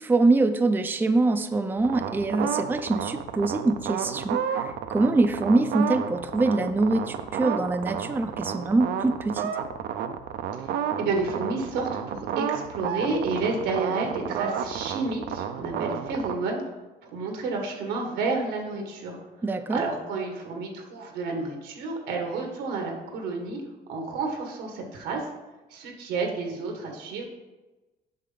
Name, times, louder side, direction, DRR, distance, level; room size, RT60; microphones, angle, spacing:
voice 1, 0.0-9.5 19.4-19.8, right 2 dB, 10° right, 7 dB, 0.4 m, -24 dB
sound 1, 1.8-16.3, right 8 dB, 70° right, 0.6 m, -32 dB
voice 2, 10.6-19.2 19.5-23.6 23.9-25.3 25.7-27.2, right 3 dB, 90° right, 2 dB, 1.6 m, -30 dB
7.5 x 5.7 x 3.9 m, 1.1 s
cardioid pair, 110°, 17 cm